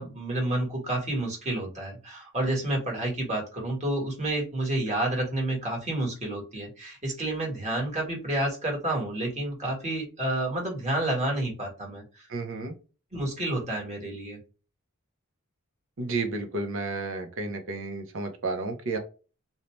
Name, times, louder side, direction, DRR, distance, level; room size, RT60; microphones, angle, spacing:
voice 1, 0.0-12.3 13.1-14.4, right 1 dB, 35° right, -1 dB, 1.4 m, -30 dB
voice 2, 12.3-12.7 16.0-19.0, right 3 dB, 65° right, 5 dB, 0.7 m, -32 dB
2.7 x 2.1 x 3.0 m, 0.34 s
head